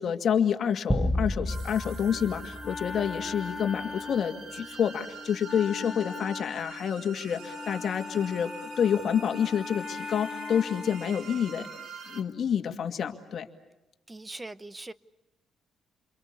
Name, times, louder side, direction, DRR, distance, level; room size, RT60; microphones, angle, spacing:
voice 1, 0.0-8.5 8.8-11.7 12.1-13.5, left 8 dB, 55° left, 6 dB, 2.2 m, -28 dB
sound 1, 0.9-3.5, left 1 dB, ahead, 1.2 m, -31 dB
sound 2, 1.5-12.2, right 5 dB, 70° right, 3.3 m, -45 dB
Wind instrument woodwind instrument, 2.1-11.2, left 4 dB, 20° left, 1.9 m, -40 dB
voice 2, 14.1-14.9, right 2 dB, 15° right, 18 dB, 0.9 m, -41 dB
29.0 x 23.5 x 8.3 m, 0.99 s
cardioid pair, 90°, 0 cm